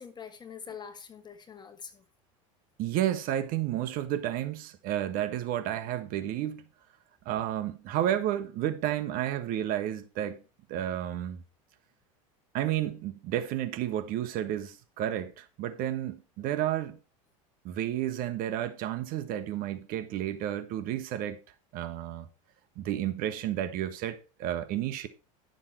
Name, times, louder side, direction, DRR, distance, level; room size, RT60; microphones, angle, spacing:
voice 1, 0.0-2.0 16.4-16.5, left 7 dB, 25° left, 2.0 m, -45 dB
voice 2, 2.8-6.7 7.2-10.4 10.7-11.4 12.5-17.0 17.6-21.4 21.7-22.3 22.8-25.1, right 12 dB, 55° right, 1.4 m, -31 dB
11.5 x 6.9 x 4.5 m
supercardioid pair, 100°, 17 cm